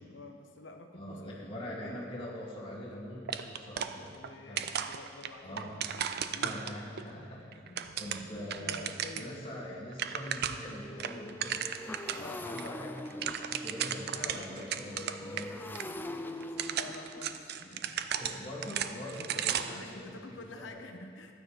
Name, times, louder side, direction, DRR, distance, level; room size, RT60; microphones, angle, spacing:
voice 1, 0.0-2.2 3.8-5.7 6.0-6.8 7.1-8.1 8.3-9.4 12.1-12.4 14.1-18.0 19.2-21.3, left 2 dB, 85° left, 5 dB, 1.1 m, -50 dB
voice 2, 0.9-4.2 4.4-4.7 5.4-5.8 6.3-15.6 17.6-17.8 18.2-20.8, equal, 30° left, -5 dB, 2.4 m, -43 dB
sound 1, 3.3-4.3 4.6-7.0 7.5-9.3 9.6-9.7 9.9-10.7 11.0-12.2 12.6-12.7 13.0-15.5 15.7-15.8 16.4-19.8, right 9 dB, 60° right, 0.5 m, -35 dB
Motorcycle, 8.1-8.2 8.6-8.8 9.1-20.7, left 1 dB, 10° left, 0.4 m, -45 dB
12.5 x 9.5 x 5.2 m, 2.3 s
head